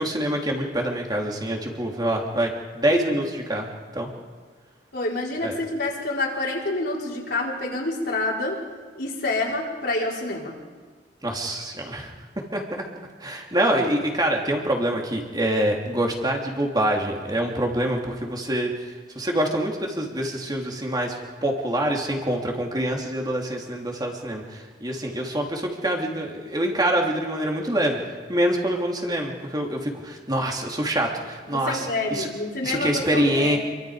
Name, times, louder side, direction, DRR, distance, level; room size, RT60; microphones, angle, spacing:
voice 1, 0.0-3.7 3.9-4.1 5.4-5.6 11.2-12.1 12.5-12.8 13.2-18.7 19.1-21.2 21.4-28.0 28.3-32.3 32.6-33.6, right 1 dB, 25° right, 0 dB, 3.2 m, -25 dB
voice 2, 4.9-8.6 9.0-10.5 31.5-33.6, left 2 dB, 65° left, -3 dB, 4.5 m, -27 dB
28.0 x 24.0 x 5.1 m, 1.5 s
head